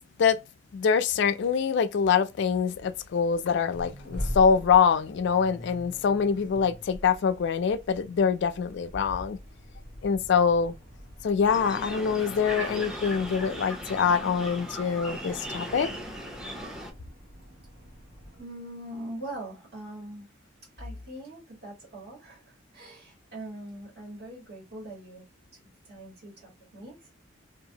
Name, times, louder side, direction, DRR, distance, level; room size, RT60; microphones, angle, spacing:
voice 1, 0.7-9.4 10.0-10.7 11.2-15.9, left 6 dB, 60° left, 0.3 m, -24 dB
Accelerating revving vroom, 2.7-18.4, equal, 45° right, 1.1 m, -43 dB
sound 1, 11.5-16.9, equal, 5° right, 0.5 m, -37 dB
voice 2, 18.4-20.3 20.8-25.2 25.5-27.1, right 1 dB, 60° right, 1.7 m, -42 dB
2.7 x 2.4 x 2.7 m
head